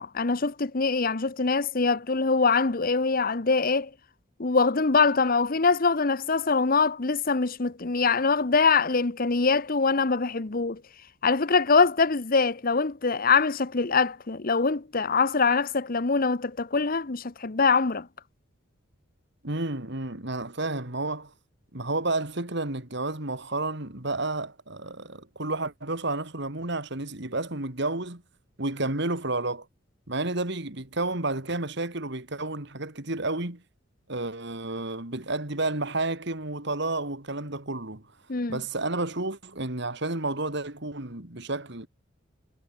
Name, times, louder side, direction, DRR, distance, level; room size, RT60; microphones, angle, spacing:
voice 1, 0.0-3.9 4.4-10.8 11.2-18.1 38.3-38.6, left 4 dB, 45° left, 0.9 m, -23 dB
voice 2, 19.4-21.3 21.7-28.2 28.6-29.6 30.1-33.6 34.1-38.0 38.5-41.9, right 2 dB, 60° right, 3.0 m, -31 dB
head